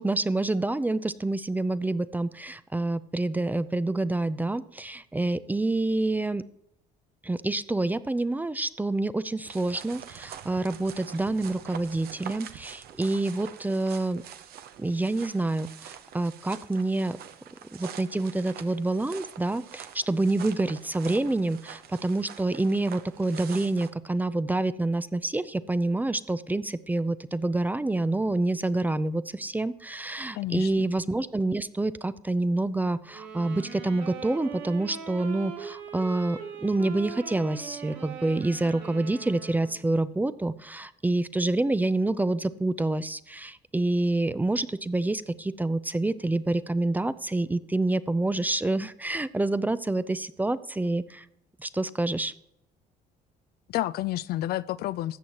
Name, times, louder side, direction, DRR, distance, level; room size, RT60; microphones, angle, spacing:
voice 1, 0.0-6.4 7.2-14.2 14.8-17.2 17.8-51.2 51.6-52.3, right 2 dB, 10° right, 0.4 m, -27 dB
sound 1, 9.4-23.9, right 9 dB, 65° right, 0.7 m, -45 dB
voice 2, 30.3-30.9 53.7-55.2, left 15 dB, 65° left, 0.4 m, -30 dB
sound 2, 33.1-39.9, right 7 dB, 85° right, 2.3 m, -41 dB
13.5 x 7.9 x 2.9 m
cardioid pair, 110°, 17 cm